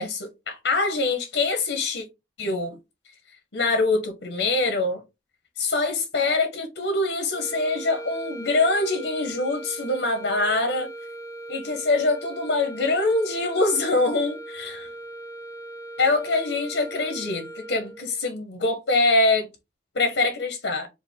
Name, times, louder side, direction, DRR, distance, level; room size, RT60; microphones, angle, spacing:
voice 1, 0.0-2.0 2.4-2.8 3.5-5.0 5.6-10.9 11.5-14.9 16.0-19.5 19.9-20.9, left 2 dB, 85° left, 0.9 m, -24 dB
sound 1, 7.3-18.2, right 2 dB, 20° left, 0.4 m, -39 dB
4.5 x 2.5 x 3.5 m
head